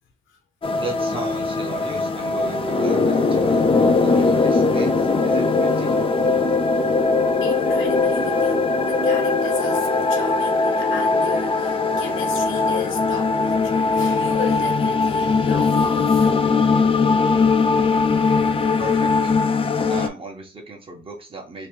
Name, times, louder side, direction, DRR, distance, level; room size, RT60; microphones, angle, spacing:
sound 1, 0.6-20.1, left 4 dB, 25° left, 0.5 m, -20 dB
voice 1, 0.8-6.0 18.8-19.4 19.9-21.7, right 2 dB, 25° right, 1.3 m, -36 dB
sound 2, 2.3-17.1, right 2 dB, 50° right, 1.1 m, -34 dB
voice 2, 7.4-16.5, left 6 dB, 85° left, 1.1 m, -35 dB
3.2 x 2.6 x 3.2 m
cardioid pair, 90°, 20 cm